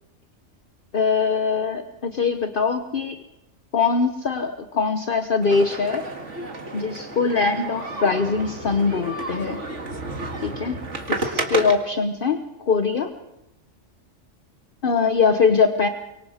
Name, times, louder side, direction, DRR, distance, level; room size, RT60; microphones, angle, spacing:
voice 1, 0.9-3.2 3.7-6.0 6.7-9.6 10.4-10.8 11.1-13.1 14.8-15.9, left 5 dB, 50° left, 8 dB, 1.1 m, -22 dB
sound 1, 5.4-11.7, right 2 dB, 75° right, 2.3 m, -31 dB
24.5 x 23.5 x 5.0 m, 0.90 s
omnidirectional pair, 1.3 m